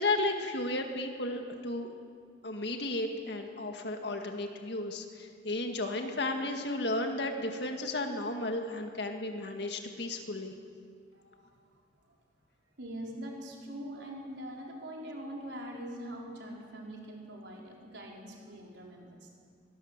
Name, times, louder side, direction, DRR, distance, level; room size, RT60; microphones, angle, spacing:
voice 1, 0.0-1.9 2.4-10.5, left 2 dB, 60° left, 4 dB, 2.0 m, -33 dB
voice 2, 11.1-11.6 12.8-19.3, right 1 dB, 65° right, -1 dB, 4.7 m, -43 dB
23.5 x 19.0 x 7.5 m, 2.2 s
head